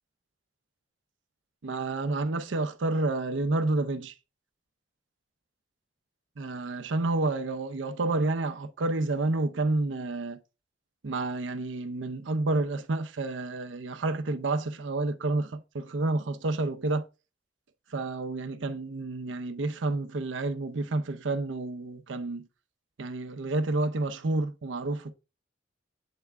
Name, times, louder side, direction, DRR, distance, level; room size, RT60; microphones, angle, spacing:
voice 1, 1.6-4.1 6.4-10.4 11.0-17.1 17.9-22.5 23.0-25.1, right 2 dB, 85° right, 0.6 m, -29 dB
8.2 x 3.5 x 3.3 m
head